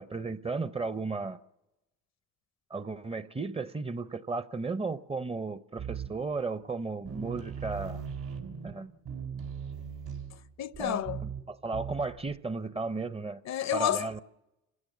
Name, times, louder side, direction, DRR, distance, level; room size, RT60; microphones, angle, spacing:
voice 1, 0.0-1.4 2.7-8.0 8.6-8.9 10.8-13.4 13.7-14.2, right 3 dB, 20° right, 0.6 m, -34 dB
sound 1, 5.8-6.4 6.7-6.8 7.1-12.4, right 7 dB, 75° right, 4.0 m, -39 dB
voice 2, 10.3-11.2 13.4-14.2, left 11 dB, 60° left, 0.6 m, -31 dB
26.5 x 16.0 x 7.3 m
cardioid pair, 90°, 30 cm